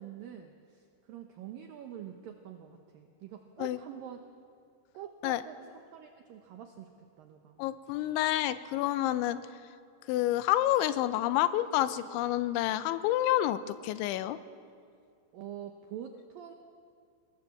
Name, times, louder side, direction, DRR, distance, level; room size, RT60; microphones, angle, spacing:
voice 1, 0.0-4.3 4.9-6.9 7.2-7.6 15.3-16.5, right 9 dB, 80° right, 5 dB, 2.0 m, -46 dB
voice 2, 7.6-9.4 10.1-14.4, left 14 dB, 85° left, 13 dB, 3.1 m, -28 dB
24.0 x 19.5 x 7.3 m, 2.3 s
omnidirectional pair, 5.4 m